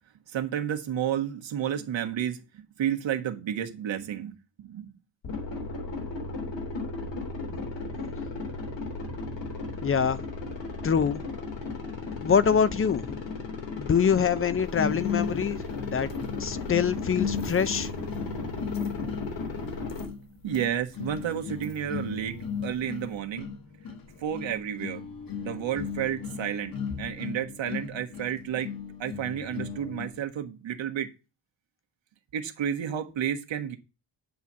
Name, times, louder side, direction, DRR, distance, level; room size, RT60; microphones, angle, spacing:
voice 1, 0.3-2.4 2.8-4.3 4.6-4.9 18.3-18.4 19.0-19.1 19.6-19.7 20.4-23.5 24.2-25.0 25.4-26.7 27.0-28.7 29.0-31.1 32.3-33.8, right 9 dB, 85° right, 1.5 m, -31 dB
sound 1, 5.2-20.1, left 3 dB, 80° left, 3.3 m, -35 dB
voice 2, 9.8-10.3 10.8-11.2 12.2-13.2 13.8-15.6 15.9-16.1 16.4-17.9, left 7 dB, 30° left, 0.5 m, -25 dB
sound 2, 14.7-30.2, left 6 dB, 50° left, 1.5 m, -36 dB
9.4 x 4.2 x 7.4 m
wide cardioid pair, 160°, 44 cm